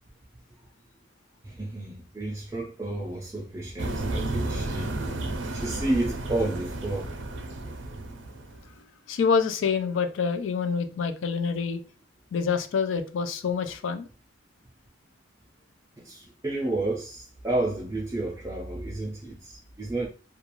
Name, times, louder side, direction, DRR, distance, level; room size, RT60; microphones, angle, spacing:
voice 1, 1.4-4.9 5.4-7.1 16.0-20.1, right 2 dB, 15° right, 0.4 m, -31 dB
sound 1, 3.8-8.7, right 2 dB, 75° right, 0.5 m, -32 dB
voice 2, 9.1-11.8 12.3-14.1, left 5 dB, 85° left, 0.4 m, -26 dB
2.4 x 2.3 x 2.9 m
head